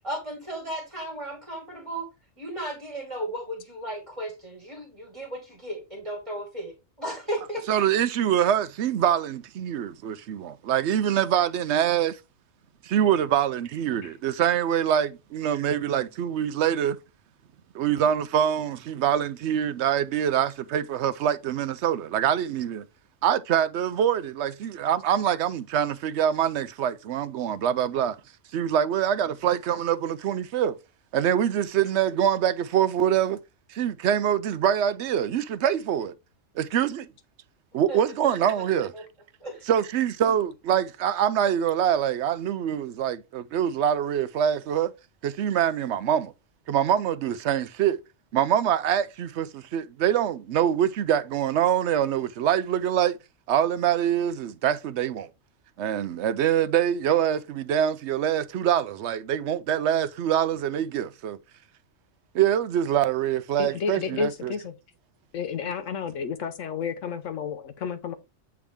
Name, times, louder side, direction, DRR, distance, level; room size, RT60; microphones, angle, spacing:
voice 1, 0.0-2.1 2.4-6.7 7.0-7.6 37.9-38.3 38.6-38.7 38.9-39.0 39.4-39.6, right 1 dB, 25° right, 1.8 m, -35 dB
voice 2, 7.7-12.2 12.8-17.0 17.7-22.8 23.2-28.2 28.5-30.8 31.1-33.4 33.7-36.1 36.6-37.1 37.7-38.9 39.7-44.9 45.2-46.3 46.7-48.0 48.3-53.2 53.5-55.3 55.8-61.4 62.3-64.5, right 9 dB, 65° right, 0.8 m, -24 dB
voice 3, 63.6-64.7 65.3-68.2, left 6 dB, 80° left, 1.0 m, -31 dB
8.5 x 3.6 x 3.4 m
omnidirectional pair, 1.3 m